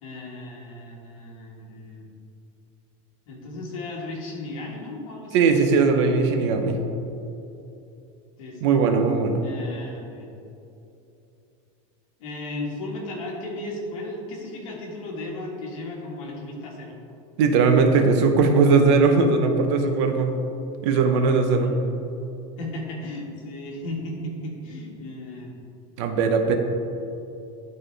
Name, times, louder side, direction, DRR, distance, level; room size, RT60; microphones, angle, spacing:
voice 1, 0.0-2.1 3.3-5.4 8.4-8.7 9.4-10.3 12.2-16.9 21.3-21.7 22.6-25.5, left 1 dB, 70° left, -1 dB, 1.7 m, -35 dB
voice 2, 5.3-6.8 8.6-9.4 17.4-20.3 20.8-21.7 26.0-26.5, right 4 dB, 55° right, 5 dB, 0.7 m, -19 dB
11.0 x 4.3 x 3.3 m, 2.8 s
supercardioid pair, 175°, 18 cm